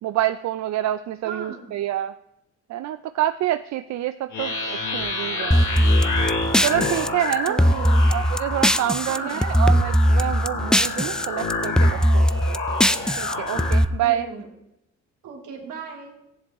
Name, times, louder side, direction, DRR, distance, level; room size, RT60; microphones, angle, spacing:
voice 1, 0.0-2.2 2.7-5.6 6.6-7.6 8.1-12.6 13.2-14.3, right 13 dB, 65° right, 11 dB, 0.5 m, -27 dB
voice 2, 1.2-1.8 7.5-8.1 9.0-9.6 14.0-14.5 15.2-16.1, right 5 dB, 80° right, 1 dB, 2.7 m, -36 dB
sound 1, 4.3-13.8, left 3 dB, 80° left, 5.2 m, -29 dB
sound 2, 5.5-9.2 9.4-11.3 11.5-13.8, equal, 5° left, 0.3 m, -19 dB
15.0 x 10.5 x 3.6 m, 0.87 s
cardioid pair, 90°, 30 cm